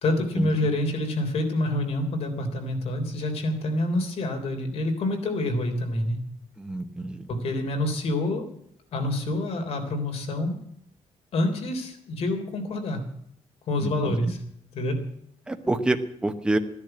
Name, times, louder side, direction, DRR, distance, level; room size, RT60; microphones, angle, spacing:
voice 1, 0.0-6.2 7.3-8.5 8.9-10.6 11.3-13.0 13.7-14.4 14.7-15.0, left 1 dB, 60° left, 4 dB, 3.5 m, -27 dB
voice 2, 6.6-7.3 13.8-14.2 15.5-16.6, right 2 dB, 5° right, 6 dB, 1.0 m, -27 dB
15.0 x 10.5 x 7.8 m, 0.71 s
cardioid pair, 165°, 12 cm